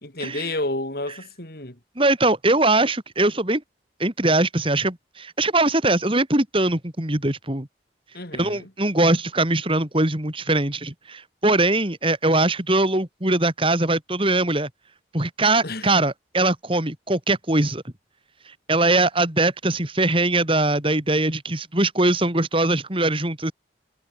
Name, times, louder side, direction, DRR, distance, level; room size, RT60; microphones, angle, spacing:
voice 1, 0.0-1.8 8.1-8.7 15.6-15.9, left 2 dB, 55° left, 4.4 m, -30 dB
voice 2, 2.0-3.6 4.0-7.7 8.4-14.7 15.1-17.8 18.7-23.5, right 2 dB, 30° right, 3.0 m, -21 dB
head